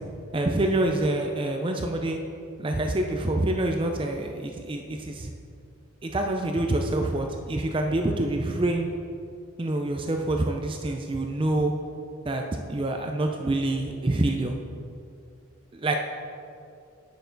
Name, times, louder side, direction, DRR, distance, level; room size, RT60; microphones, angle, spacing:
voice 1, 0.3-2.2 2.6-5.3 6.0-8.9 9.6-11.7 12.3-12.4 12.7-14.5 15.7-16.0, right 2 dB, 25° right, 3 dB, 0.4 m, -26 dB
9.0 x 6.5 x 3.9 m, 2.4 s
head